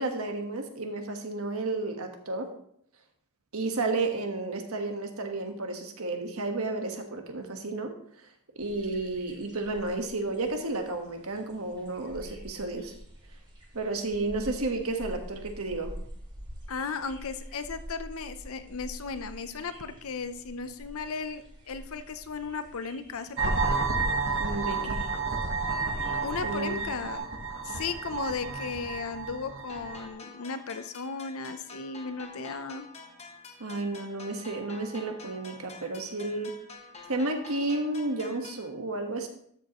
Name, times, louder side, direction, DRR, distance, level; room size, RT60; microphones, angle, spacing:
voice 1, 0.0-2.5 3.5-7.9 8.5-12.9 13.7-15.9 24.4-25.1 26.4-26.8 33.6-36.5 37.1-39.3, right 2 dB, 75° right, 4 dB, 1.4 m, -32 dB
sound 1, 8.6-27.2, equal, 20° right, 2.1 m, -47 dB
voice 2, 16.7-23.4 26.2-27.3 27.6-32.9, left 5 dB, 70° left, 11 dB, 0.7 m, -36 dB
sound 2, 23.4-30.1, right 4 dB, 60° right, 1.4 m, -31 dB
sound 3, 29.7-38.7, left 4 dB, 30° left, 1.3 m, -48 dB
12.5 x 7.1 x 3.0 m, 0.68 s
head